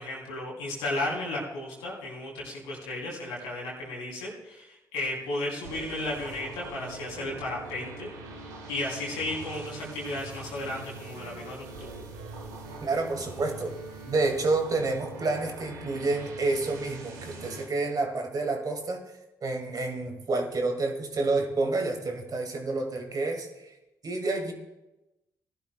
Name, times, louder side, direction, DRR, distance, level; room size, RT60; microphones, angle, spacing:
voice 1, 0.0-8.1 8.7-12.0, left 2 dB, 85° left, -4 dB, 3.2 m, -34 dB
sound 1, 5.6-17.6, right 2 dB, 90° right, 1.2 m, -43 dB
voice 2, 12.8-13.7 14.1-19.0 19.4-23.5 24.0-24.5, right 3 dB, 45° right, 4 dB, 2.0 m, -29 dB
18.0 x 11.5 x 2.3 m, 0.97 s
hypercardioid pair, 45°, 9 cm